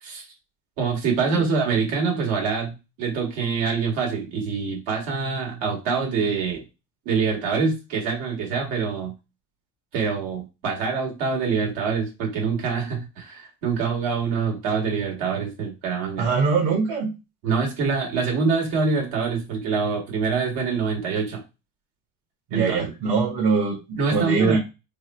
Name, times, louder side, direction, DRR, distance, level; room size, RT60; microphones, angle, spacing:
voice 1, 0.8-6.6 7.1-9.1 9.9-16.3 17.4-21.4 22.5-22.9 24.0-24.6, right 5 dB, 75° right, -1 dB, 2.0 m, -25 dB
voice 2, 16.2-17.1 22.5-24.6, right 4 dB, 55° right, -3 dB, 1.3 m, -22 dB
3.5 x 2.2 x 4.3 m, 0.27 s
cardioid pair, 125°, 46 cm